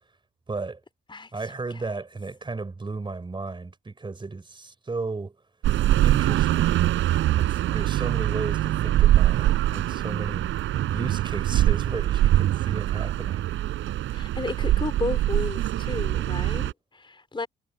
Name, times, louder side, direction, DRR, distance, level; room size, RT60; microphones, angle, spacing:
voice 1, 0.5-0.8 1.3-5.4 6.0-6.8 7.3-13.4, right 3 dB, 25° right, 4.1 m, -34 dB
sound 1, 5.6-16.7, right 14 dB, 85° right, 4.0 m, -23 dB
voice 2, 14.1-17.5, left 3 dB, 25° left, 3.9 m, -33 dB
cardioid pair, 90°, 20 cm